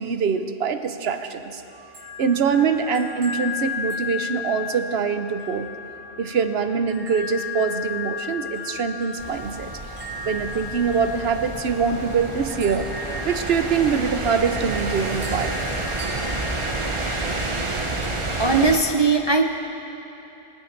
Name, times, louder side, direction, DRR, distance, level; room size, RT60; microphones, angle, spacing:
voice 1, 0.0-1.6 2.2-5.7 6.2-9.7 10.3-12.9 13.2-15.6, right 6 dB, 60° right, 8 dB, 0.9 m, -24 dB
sound 1, 1.5-18.4, left 5 dB, 85° right, 2.9 m, -35 dB
sound 2, 9.2-18.8, right 2 dB, 30° right, 0.8 m, -29 dB
voice 2, 18.4-19.4, right 4 dB, 45° right, 3 dB, 0.3 m, -19 dB
25.0 x 9.4 x 3.3 m, 3.0 s
omnidirectional pair, 1.3 m